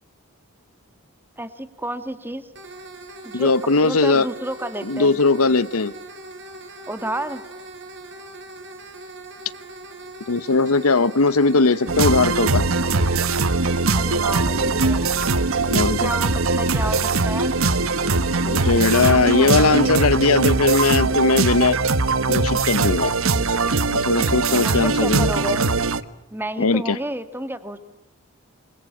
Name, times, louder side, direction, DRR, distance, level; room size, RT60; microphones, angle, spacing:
voice 1, 1.4-2.5 3.2-3.5 3.8-5.2 6.9-7.4 13.9-15.1 16.0-17.6 18.9-19.9 24.5-25.6 26.3-27.8, right 1 dB, 10° right, 10 dB, 1.8 m, -31 dB
sound 1, 2.6-21.7, right 2 dB, 55° right, 5.2 m, -40 dB
voice 2, 3.3-4.3 4.8-5.9 10.3-12.7 15.7-16.1 18.5-21.8 22.3-23.1 24.0-25.3 26.6-27.0, left 3 dB, 85° left, 16 dB, 1.0 m, -19 dB
sound 2, 11.9-26.0, right 3 dB, 70° right, 1.2 m, -21 dB
Boom, 14.3-18.6, equal, 85° right, 4.2 m, -40 dB
28.5 x 22.5 x 8.6 m, 0.93 s
head